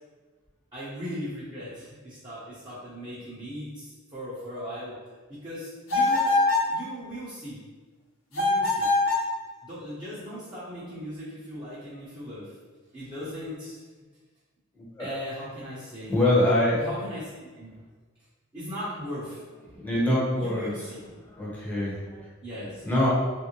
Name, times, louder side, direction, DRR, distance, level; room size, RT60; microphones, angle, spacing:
voice 1, 0.7-5.0 5.3-6.3 6.7-7.6 8.3-8.9 9.6-12.6 12.9-13.8 15.0-16.2 16.8-17.7 18.5-19.4 20.4-21.0 22.4-22.8, equal, 20° right, -11 dB, 0.8 m, -38 dB
sound 1, 5.9-6.7 8.3-9.3, left 2 dB, 75° left, 1.0 m, -23 dB
voice 2, 14.7-15.1 16.1-16.8 19.7-20.9 21.2-22.3 22.8-23.1, left 1 dB, 10° left, -7 dB, 0.8 m, -25 dB
3.3 x 2.6 x 2.9 m, 1.3 s
head